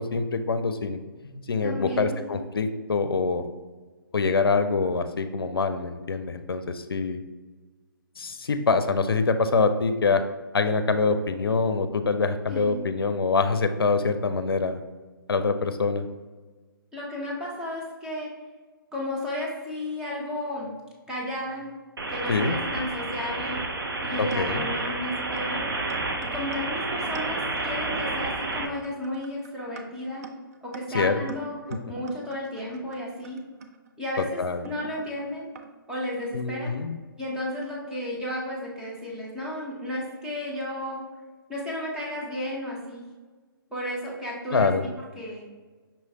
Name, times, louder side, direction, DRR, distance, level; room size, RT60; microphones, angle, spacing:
voice 1, 0.0-3.4 4.1-7.2 8.2-10.2 10.5-14.8 15.3-16.1 22.3-22.6 24.2-24.6 30.9-31.2 31.7-31.8 34.4-34.7 36.3-37.0 44.5-44.8, left 4 dB, 85° left, 9 dB, 0.5 m, -25 dB
voice 2, 1.6-2.4 12.5-12.8 16.9-18.3 18.9-20.7 21.1-21.7 22.1-23.7 24.0-25.7 26.2-30.3 30.6-31.6 31.9-33.4 34.0-35.5 35.9-36.7 37.2-41.0 41.5-43.0 43.7-44.7 45.1-45.5, left 1 dB, 5° right, -5 dB, 0.9 m, -33 dB
sound 1, 22.0-28.7, right 2 dB, 80° right, 0.7 m, -30 dB
sound 2, 23.0-23.2 23.8-23.9 24.3-24.7 25.4-25.5 25.9-35.7, right 5 dB, 45° right, 0.4 m, -45 dB
5.6 x 3.1 x 2.8 m, 1.3 s
figure-of-eight pair, 145°, 12 cm